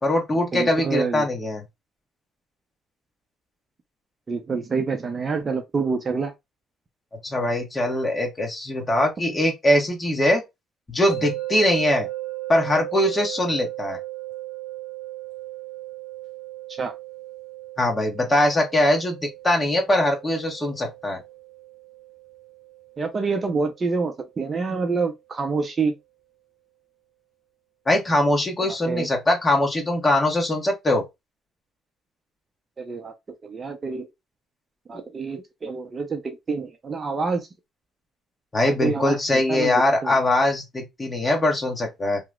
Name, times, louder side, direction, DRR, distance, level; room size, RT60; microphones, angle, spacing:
voice 1, 0.0-1.6 7.2-10.4 10.9-12.1 12.5-14.0 17.8-21.2 27.9-31.0 38.5-42.2, left 1 dB, 20° left, 1.1 m, -22 dB
voice 2, 0.5-1.3 4.3-6.3 16.7-17.0 23.0-26.0 28.6-29.1 32.8-33.1 33.4-34.1 34.9-37.5 38.6-40.2, right 4 dB, 35° right, 0.5 m, -27 dB
sound 1, 11.1-24.2, right 15 dB, 70° left, 0.7 m, -37 dB
2.9 x 2.1 x 3.5 m
cardioid pair, 95°, 0 cm